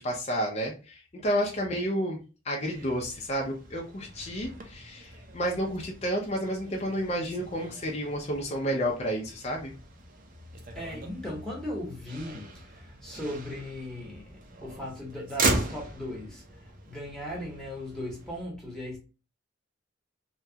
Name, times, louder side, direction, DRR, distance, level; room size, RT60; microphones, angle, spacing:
voice 1, 0.0-2.2 2.5-9.7, equal, 35° left, 0.6 m, -31 dB
Motor vehicle (road), 2.6-18.4, right 2 dB, 45° right, 0.6 m, -38 dB
voice 2, 10.7-14.3 14.6-16.4 16.9-19.0, left 1 dB, 5° left, 0.9 m, -37 dB
2.9 x 2.3 x 2.7 m
head